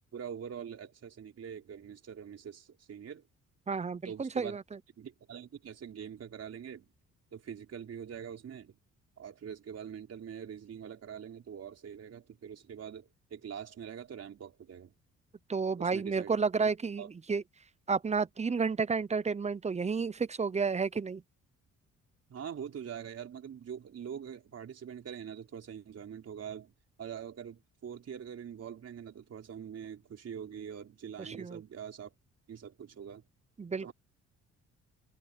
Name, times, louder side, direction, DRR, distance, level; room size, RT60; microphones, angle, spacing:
voice 1, 0.1-3.2 4.0-4.6 5.0-6.9 7.3-8.7 9.2-14.9 15.8-16.4 16.6-16.7 17.0-17.1 22.3-26.7 27.0-32.1 32.5-33.2 33.8-33.9, right 8 dB, 55° right, 4.5 m, -44 dB
voice 2, 3.7-4.6 15.5-17.4 17.9-21.2 31.2-31.6 33.6-33.9, right 5 dB, 20° right, 0.8 m, -31 dB
cardioid pair, 90°, 30 cm